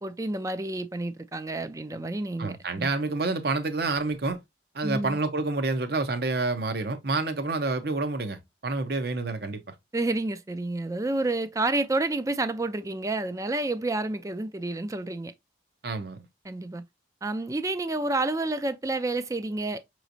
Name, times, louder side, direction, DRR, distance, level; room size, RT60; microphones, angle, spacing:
voice 1, 0.0-2.9 4.8-5.2 9.9-15.3 16.4-16.8 17.2-19.8, right 2 dB, 15° right, 0.4 m, -29 dB
voice 2, 2.4-4.4 4.7-9.7 15.8-16.2, right 3 dB, 55° right, 0.8 m, -28 dB
5.8 x 3.1 x 2.6 m
head